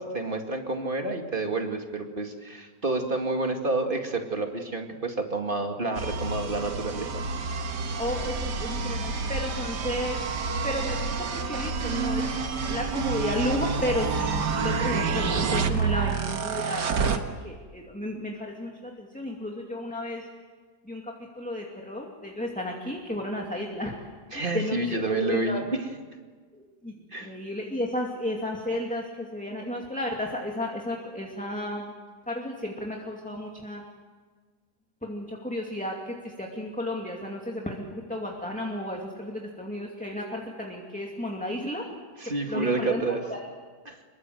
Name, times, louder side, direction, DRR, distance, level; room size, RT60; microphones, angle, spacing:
voice 1, 0.0-7.2 24.3-25.9 27.1-27.4 42.2-43.2 43.9-44.0, right 3 dB, 30° right, 4 dB, 2.4 m, -29 dB
sound 1, 6.0-17.2, right 4 dB, 80° right, 2.1 m, -28 dB
voice 2, 8.0-10.2 10.6-20.3 20.9-23.9 24.5-25.6 26.5-26.9 27.2-31.9 32.3-33.8 35.0-41.8 42.2-43.4, left 1 dB, 5° left, 0 dB, 2.4 m, -33 dB
26.0 x 22.5 x 7.9 m, 1.5 s
omnidirectional pair, 1.8 m